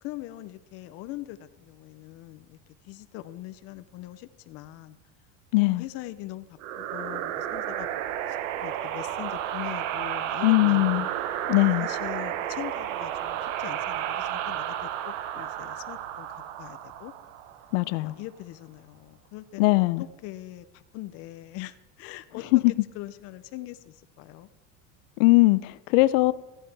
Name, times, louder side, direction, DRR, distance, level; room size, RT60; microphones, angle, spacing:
voice 1, 0.0-2.6 2.8-5.0 5.6-7.9 8.3-11.1 11.8-17.1 18.0-19.9 20.2-24.5, left 16 dB, 40° left, 12 dB, 0.5 m, -42 dB
voice 2, 5.5-5.8 10.4-11.1 11.5-11.9 17.7-18.1 19.6-20.0 22.5-22.7 25.2-26.3, left 22 dB, 90° left, 16 dB, 0.5 m, -20 dB
sound 1, 6.6-17.9, right 11 dB, 90° right, 0.8 m, -32 dB
14.5 x 9.9 x 3.3 m, 1.0 s
cardioid pair, 160°, 37 cm